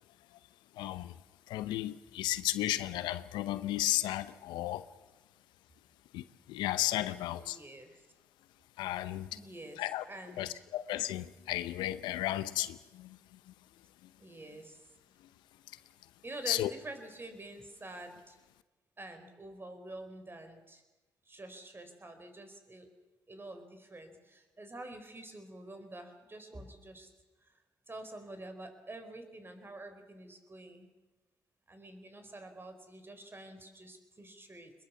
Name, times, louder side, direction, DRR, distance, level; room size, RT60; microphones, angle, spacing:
voice 1, 0.8-1.1 1.5-4.8 6.1-7.6 8.8-9.3 9.8-10.0 10.4-13.2 16.5-16.7, left 14 dB, 80° left, 0.7 m, -34 dB
voice 2, 7.1-8.0 9.3-10.6 14.2-14.8 16.2-18.4 19.0-20.8 21.2-22.9 23.3-27.1 27.5-27.6 27.9-30.9 31.7-34.7, right 2 dB, 30° right, 4.7 m, -47 dB
21.5 x 21.5 x 7.1 m
hypercardioid pair, 45°, 8 cm